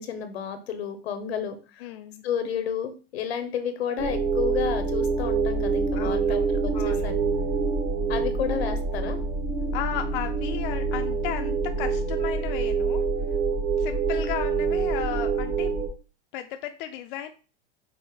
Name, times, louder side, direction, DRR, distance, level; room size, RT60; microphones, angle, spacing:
voice 1, 0.0-1.8 2.2-7.2 8.1-9.2, left 8 dB, 85° left, 9 dB, 1.0 m, -31 dB
voice 2, 1.8-2.2 5.9-6.5 6.7-7.1 9.7-13.1 13.8-15.7 16.3-17.3, left 11 dB, 55° left, 6 dB, 0.5 m, -34 dB
sound 1, 4.0-15.9, right 4 dB, 50° right, 1.0 m, -26 dB
5.5 x 2.1 x 4.7 m, 0.34 s
supercardioid pair, 140°, 31 cm